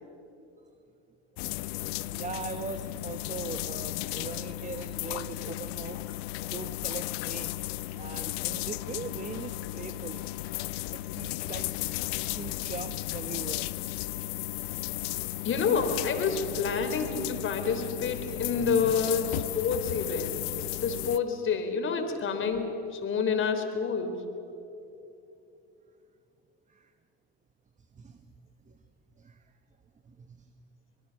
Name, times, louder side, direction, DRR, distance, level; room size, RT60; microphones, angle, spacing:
sound 1, 1.4-21.2, left 17 dB, 70° left, 0.7 m, -35 dB
voice 1, 2.1-6.0 6.5-7.6 7.9-10.2 10.9-11.7 12.0-12.1 12.3-13.7 28.0-28.2 29.2-29.4 30.1-30.4, right 5 dB, 25° right, 9 dB, 1.2 m, -40 dB
voice 2, 15.4-20.5 20.8-24.2, left 5 dB, 40° left, 6 dB, 3.5 m, -28 dB
24.5 x 22.0 x 6.4 m, 2.8 s
hypercardioid pair, 85°, 32 cm